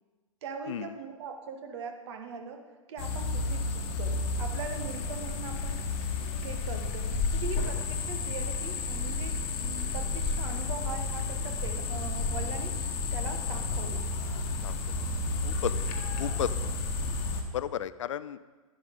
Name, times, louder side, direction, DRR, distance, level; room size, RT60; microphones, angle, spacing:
voice 1, 0.4-5.8 6.4-14.1, right 5 dB, 50° right, 5 dB, 1.5 m, -41 dB
sound 1, 3.0-17.4, left 3 dB, 40° left, 1.6 m, -31 dB
voice 2, 14.6-15.0 15.4-16.8 17.5-18.4, left 10 dB, 60° left, 15 dB, 0.4 m, -34 dB
11.0 x 10.5 x 3.8 m, 1.3 s
figure-of-eight pair, 110°, 18 cm